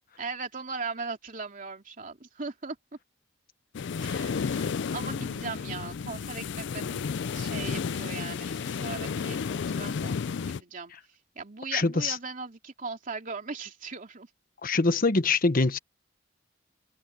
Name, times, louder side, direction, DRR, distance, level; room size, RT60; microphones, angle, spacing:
voice 1, 0.2-2.8 4.0-7.0 7.3-10.2 10.4-14.3, right 4 dB, 45° right, 3.0 m, -39 dB
sound 1, 3.7-10.6, left 6 dB, 65° left, 0.4 m, -32 dB
voice 2, 11.7-12.2 14.6-15.8, left 3 dB, 50° left, 1.2 m, -24 dB
head